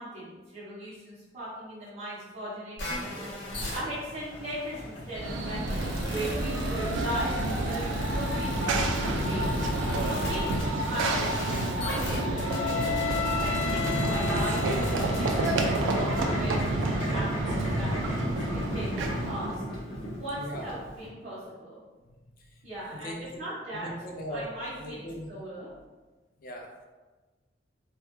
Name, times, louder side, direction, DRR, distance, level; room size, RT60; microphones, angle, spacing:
voice 1, 0.0-8.8 9.3-9.7 10.0-13.0 13.4-19.6 20.2-21.8 22.6-23.9 24.3-25.7, right 1 dB, 40° right, -11 dB, 0.8 m, -38 dB
sound 1, 2.8-16.4, left 4 dB, 70° left, 0.8 m, -35 dB
Boiling, 3.0-21.1, equal, 30° left, 0.7 m, -36 dB
Run / Train, 5.1-19.6, right 2 dB, 90° right, 0.3 m, -30 dB
voice 2, 20.4-20.7 22.0-23.4 23.7-24.4 24.8-25.3 26.4-26.8, equal, 50° left, 1 dB, 0.4 m, -40 dB
2.3 x 2.1 x 2.9 m, 1.2 s
head